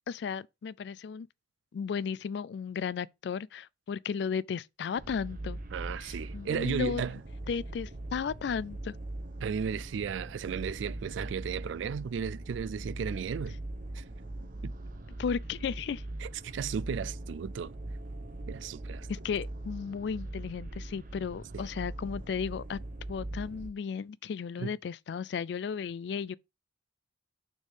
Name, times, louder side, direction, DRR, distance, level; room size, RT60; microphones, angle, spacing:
voice 1, 0.1-1.3 1.7-5.6 6.0-7.0 7.5-8.9 15.2-16.0 19.1-22.8 23.1-26.3, left 6 dB, 65° left, 0.3 m, -34 dB
sound 1, 5.0-23.7, right 1 dB, 45° right, 0.8 m, -41 dB
voice 2, 5.7-7.2 9.4-13.6 13.9-14.0 14.6-14.7 16.2-17.7 18.5-19.1 21.5-21.6 24.6-24.7, right 7 dB, 80° right, 0.3 m, -35 dB
6.3 x 3.6 x 4.9 m
head